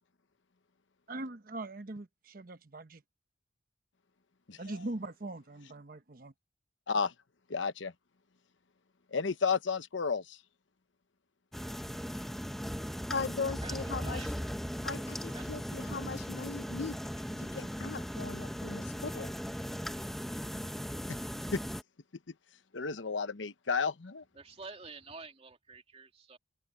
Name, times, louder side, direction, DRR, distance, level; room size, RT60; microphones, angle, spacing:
voice 1, 1.1-3.0 4.6-6.3, right 2 dB, 50° right, 1.0 m, -41 dB
voice 2, 7.5-7.9 9.1-10.4 21.5-21.6 22.7-24.2, left 5 dB, 80° left, 1.0 m, -32 dB
sound 1, 11.5-21.8, equal, ahead, 0.8 m, -38 dB
voice 3, 13.1-14.2 14.8-17.0 17.3-19.3, left 4 dB, 60° left, 0.6 m, -39 dB
voice 4, 13.6-14.6 24.3-26.4, right 4 dB, 35° right, 2.7 m, -49 dB
head